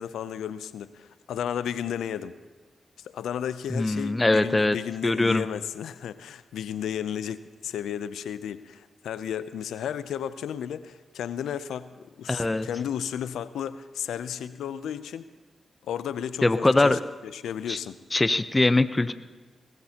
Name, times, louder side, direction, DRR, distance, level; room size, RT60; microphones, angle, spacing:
voice 1, 0.0-2.3 3.0-11.9 12.2-15.3 15.9-18.0, left 9 dB, 85° left, 14 dB, 0.5 m, -33 dB
voice 2, 3.7-4.8 5.0-5.4 12.3-12.7 16.4-17.0 17.7-17.8 18.1-19.1, left 2 dB, 25° left, 12 dB, 0.7 m, -22 dB
20.5 x 16.0 x 2.9 m, 1.4 s
supercardioid pair, 45°, 0 cm